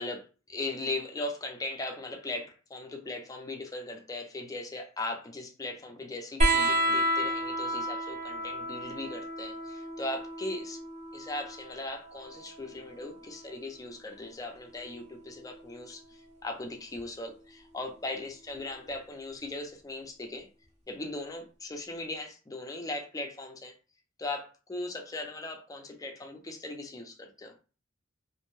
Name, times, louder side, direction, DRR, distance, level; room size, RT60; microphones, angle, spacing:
voice 1, 0.0-10.8 11.1-20.5 20.9-23.7 24.2-27.5, left 2 dB, 20° left, 0.5 m, -38 dB
sound 1, 6.4-13.5 14.8-15.7 17.0-17.1, right 1 dB, 35° right, 0.8 m, -31 dB
2.6 x 2.1 x 3.1 m
head